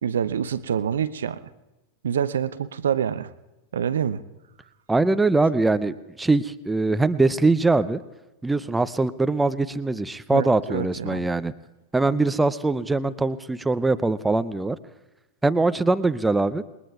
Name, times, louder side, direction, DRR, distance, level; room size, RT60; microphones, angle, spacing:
voice 1, 0.0-1.4 2.0-3.3 3.7-4.2 10.3-11.3, right 8 dB, 65° right, 13 dB, 0.6 m, -26 dB
voice 2, 4.9-8.0 8.4-11.5 11.9-14.8 15.4-16.6, right 3 dB, 10° right, 13 dB, 0.5 m, -22 dB
27.5 x 21.0 x 2.4 m, 1.0 s
figure-of-eight pair, 90°, 0 cm